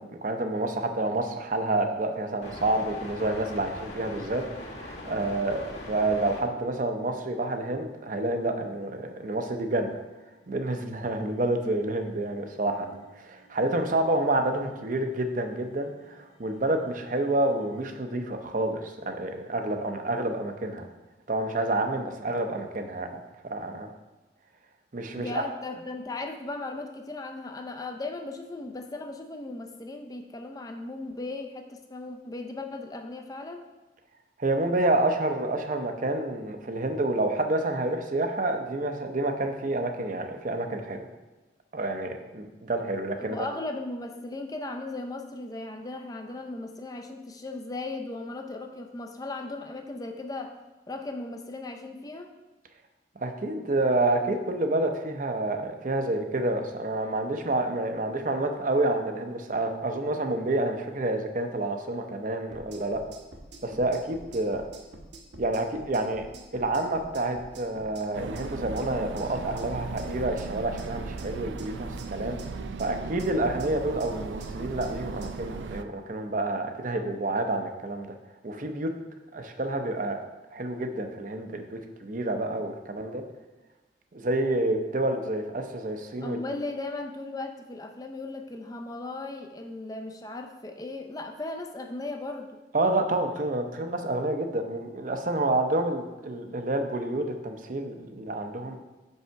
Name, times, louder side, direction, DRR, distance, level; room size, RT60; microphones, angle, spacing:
voice 1, 0.0-5.6 5.9-9.9 10.5-20.9 21.3-23.1 23.4-23.9 24.9-25.4 34.4-41.0 41.7-43.5 53.2-63.0 63.6-64.6 65.4-66.3 66.5-72.4 72.8-78.2 78.4-78.9 79.3-80.2 80.5-83.2 84.1-86.4 92.7-98.8, right 2 dB, 45° right, 6 dB, 0.6 m, -28 dB
sound 1, 2.4-6.4 7.5-7.6 8.4-10.4 10.8-17.9, left 1 dB, 75° left, 1.9 m, -45 dB
voice 2, 25.1-33.7 43.2-50.6 50.9-52.3 86.2-92.6, left 2 dB, 20° left, 5 dB, 0.5 m, -37 dB
sound 2, 62.5-75.3, right 1 dB, 70° right, 1.1 m, -47 dB
sound 3, 68.1-75.8, right 4 dB, 85° right, 0.4 m, -37 dB
6.1 x 5.5 x 4.5 m, 1.1 s
head